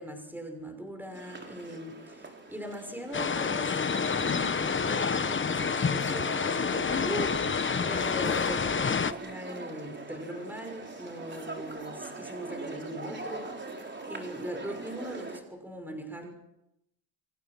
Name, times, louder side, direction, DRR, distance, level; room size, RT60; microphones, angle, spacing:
voice 1, 0.0-8.7 9.0-16.3, equal, 5° right, 4 dB, 6.2 m, -40 dB
sound 1, 1.1-15.4, right 3 dB, 25° right, 4.2 m, -42 dB
sound 2, 3.1-9.1, left 5 dB, 25° left, 1.1 m, -28 dB
29.5 x 24.0 x 6.2 m, 0.85 s
cardioid pair, 110°, 45 cm